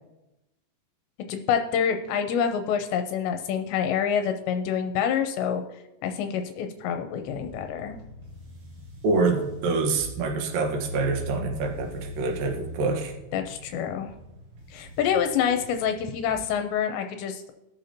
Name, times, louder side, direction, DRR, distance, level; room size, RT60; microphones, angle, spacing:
voice 1, 1.3-5.6 6.0-8.0 13.3-14.1 14.7-17.5, left 8 dB, 80° left, 6 dB, 2.8 m, -27 dB
sound 1, 7.2-16.4, equal, 90° right, 4.5 m, -41 dB
voice 2, 9.0-13.1, right 3 dB, 65° right, 3 dB, 2.5 m, -26 dB
20.0 x 6.8 x 2.8 m, 0.94 s
omnidirectional pair, 5.3 m